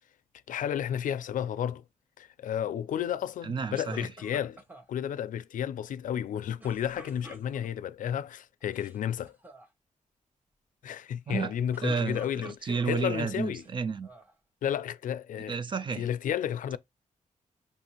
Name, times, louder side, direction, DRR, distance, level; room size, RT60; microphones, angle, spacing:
voice 1, 0.5-1.8 2.2-4.6 4.9-9.4 10.8-13.6 14.6-15.6 15.9-16.8, left 9 dB, 75° left, 0.4 m, -32 dB
voice 2, 3.4-4.1 11.3-11.5 11.8-14.1 15.5-16.1, right 5 dB, 35° right, 0.4 m, -31 dB
sound 1, 3.7-4.9 6.6-7.9 8.6-9.0 9.2-9.7 11.5-13.0 13.6-14.3, equal, 15° right, 1.0 m, -48 dB
5.4 x 2.6 x 2.8 m
wide cardioid pair, 135°, 14 cm